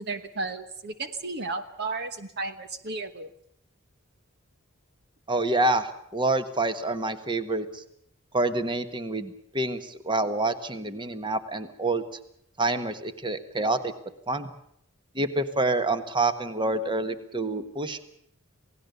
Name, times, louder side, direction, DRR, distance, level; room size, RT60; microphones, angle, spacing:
voice 1, 0.0-3.3, right 3 dB, 50° right, 9 dB, 1.2 m, -33 dB
voice 2, 5.3-7.8 8.3-12.0 12.6-13.9 14.3-14.5 15.1-18.0, right 2 dB, 20° right, 10 dB, 1.5 m, -27 dB
28.0 x 18.0 x 6.9 m, 0.71 s
head